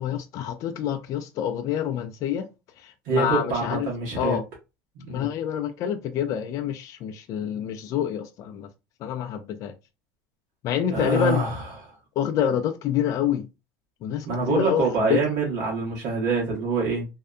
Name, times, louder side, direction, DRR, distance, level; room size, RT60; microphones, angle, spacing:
voice 1, 0.0-2.5 3.1-3.9 4.2-4.4 5.1-8.7 9.0-9.7 10.6-11.4 12.2-13.4 14.0-14.8 15.1-15.2, left 9 dB, 45° left, 0.4 m, -27 dB
voice 2, 3.0-4.4 4.9-5.3 10.9-12.0 14.2-17.1, right 3 dB, 65° right, 1.1 m, -25 dB
2.7 x 2.1 x 2.3 m
supercardioid pair, 125°, 8 cm